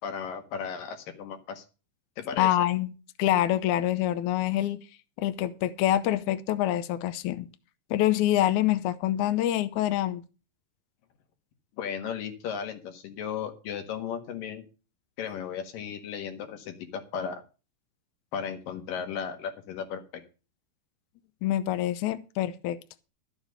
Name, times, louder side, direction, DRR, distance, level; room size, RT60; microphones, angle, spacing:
voice 1, 0.0-1.6 2.2-2.5 11.8-14.6 15.2-17.4 18.3-20.2, left 7 dB, 90° left, 3.4 m, -35 dB
voice 2, 2.4-2.9 3.2-4.8 5.2-7.5 7.9-10.2 21.4-22.8, left 13 dB, 75° left, 2.0 m, -26 dB
12.5 x 7.2 x 6.6 m
omnidirectional pair, 3.8 m